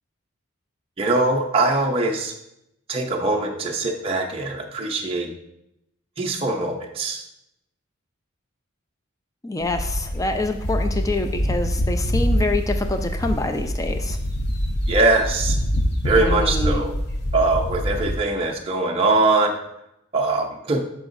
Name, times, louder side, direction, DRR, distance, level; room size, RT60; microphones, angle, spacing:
voice 1, 1.0-2.3 2.9-5.3 6.2-7.2 14.9-15.6 16.0-16.9 17.3-19.6 20.1-20.8, right 2 dB, 25° right, 0 dB, 0.6 m, -22 dB
voice 2, 9.4-14.2 16.1-16.8, left 2 dB, 15° left, 6 dB, 0.4 m, -26 dB
sound 1, 9.6-18.2, equal, 50° left, 0.7 m, -25 dB
8.8 x 6.1 x 2.6 m, 0.82 s
head